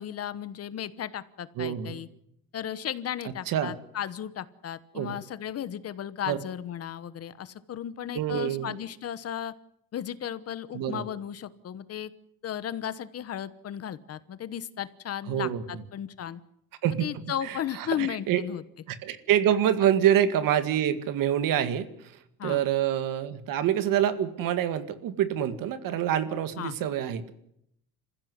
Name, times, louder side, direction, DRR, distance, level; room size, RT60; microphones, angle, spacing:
voice 1, 0.0-2.1 2.5-9.5 9.9-12.1 12.4-16.4 17.0-18.6 22.4-22.6 26.6-26.8, left 10 dB, 45° left, 15 dB, 1.1 m, -35 dB
voice 2, 1.6-2.0 3.5-3.7 4.9-5.2 6.3-6.4 8.1-8.8 10.7-11.0 15.3-15.6 16.8-17.0 18.0-18.4 18.9-21.9 22.4-27.3, right 10 dB, 70° right, 11 dB, 2.0 m, -26 dB
27.5 x 15.5 x 9.5 m, 0.77 s
cardioid pair, 150°, 35 cm